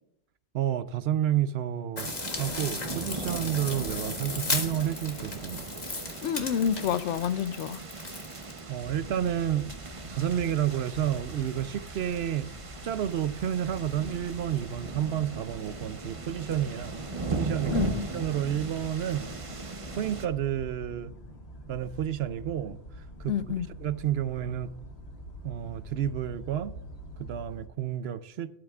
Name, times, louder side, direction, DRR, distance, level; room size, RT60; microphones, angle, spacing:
voice 1, 0.5-2.1 2.4-5.7 8.7-9.7 10.1-16.9 17.3-17.8 18.1-19.3 20.0-21.1 21.7-22.8 23.2-23.3 23.8-24.7 25.4-26.7 27.2-28.5, right 10 dB, 65° right, 0.8 m, -30 dB
sound 1, 2.0-8.6, left 2 dB, 35° left, 1.6 m, -36 dB
sound 2, 2.0-20.3, right 3 dB, 30° right, 0.8 m, -39 dB
voice 2, 6.2-7.8 17.7-18.0 23.3-23.7, left 8 dB, 85° left, 1.0 m, -28 dB
sound 3, 8.8-27.7, equal, 65° left, 1.8 m, -45 dB
12.5 x 12.0 x 2.4 m
omnidirectional pair, 1.2 m